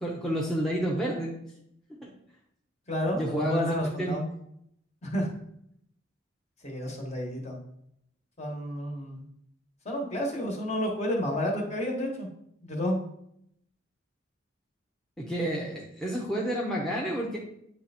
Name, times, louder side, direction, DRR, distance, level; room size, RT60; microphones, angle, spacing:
voice 1, 0.0-1.3 2.0-2.1 3.1-4.2 15.2-17.4, right 1 dB, ahead, -3 dB, 0.9 m, -30 dB
voice 2, 2.9-4.3 5.0-5.3 6.6-7.6 8.4-9.3 9.8-12.3 12.6-13.0, equal, 35° left, 0 dB, 1.5 m, -30 dB
9.3 x 3.4 x 4.3 m, 0.74 s
head